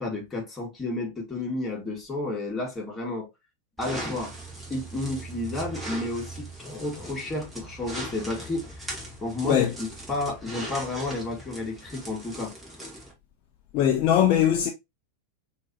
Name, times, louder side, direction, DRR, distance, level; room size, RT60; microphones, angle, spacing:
voice 1, 0.0-3.3 3.8-4.3 4.7-12.5, left 2 dB, 15° left, 2.1 m, -32 dB
sound 1, 3.8-13.1, right 1 dB, 10° right, 2.0 m, -39 dB
voice 2, 13.7-14.7, left 10 dB, 40° left, 0.6 m, -21 dB
6.0 x 3.0 x 2.9 m
figure-of-eight pair, 90°, 0 cm